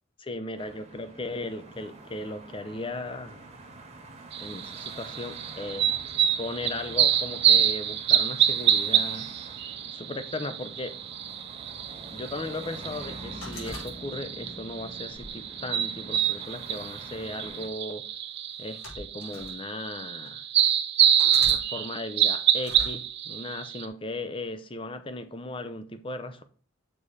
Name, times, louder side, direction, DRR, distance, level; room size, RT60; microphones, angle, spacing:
voice 1, 0.2-3.4 4.4-5.9 6.4-9.3 9.9-11.0 12.1-18.1 18.6-20.5 21.5-26.4, left 2 dB, 25° left, 0.6 m, -37 dB
sound 1, 0.5-17.7, right 2 dB, 35° right, 1.3 m, -46 dB
sound 2, 4.3-23.9, right 10 dB, 60° right, 0.7 m, -27 dB
sound 3, 13.4-14.5 15.1-16.3 17.2-17.5 18.5-19.6 20.3-20.4 21.2-21.6 22.6-22.9, left 2 dB, 80° left, 3.5 m, -42 dB
6.9 x 4.2 x 4.9 m
head